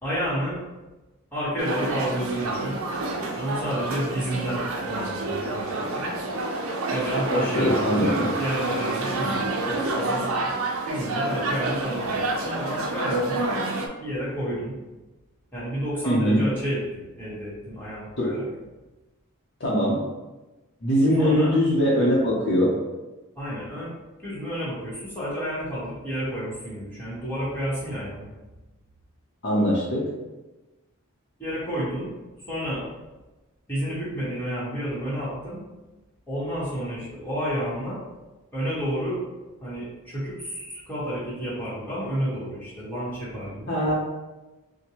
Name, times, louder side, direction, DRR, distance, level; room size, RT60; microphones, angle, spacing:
voice 1, 0.0-0.6 1.3-2.8 3.3-6.1 6.9-10.5 10.8-13.4 14.0-14.8 15.5-18.5 21.2-21.5 23.4-23.9 24.2-28.3 31.4-32.1 32.4-32.8 33.7-35.6 36.3-38.0 38.5-39.2 39.6-43.8, equal, 10° left, -10 dB, 1.2 m, -30 dB
sound 1, 1.6-13.9, right 2 dB, 70° right, 0.5 m, -28 dB
voice 2, 7.3-8.3 16.1-16.4 18.2-18.3 19.6-20.0 20.8-22.7 29.4-30.0 43.7-43.9, equal, 50° left, -6 dB, 0.8 m, -21 dB
4.3 x 2.2 x 2.9 m, 1.1 s
head